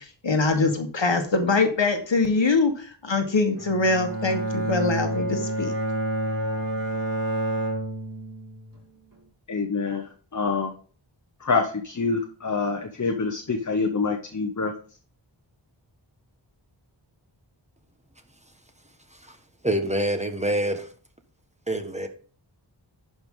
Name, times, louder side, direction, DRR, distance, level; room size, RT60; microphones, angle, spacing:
voice 1, 0.0-5.7, left 3 dB, 70° left, 5 dB, 1.3 m, -23 dB
Bowed string instrument, 3.5-8.8, right 1 dB, 45° right, 3.1 m, -29 dB
voice 2, 9.5-10.7 11.4-14.7, left 4 dB, 40° left, 5 dB, 0.9 m, -26 dB
voice 3, 19.6-20.9 21.7-22.1, right 1 dB, 15° right, 6 dB, 1.3 m, -26 dB
11.0 x 5.3 x 3.7 m, 0.42 s
wide cardioid pair, 60°, 46 cm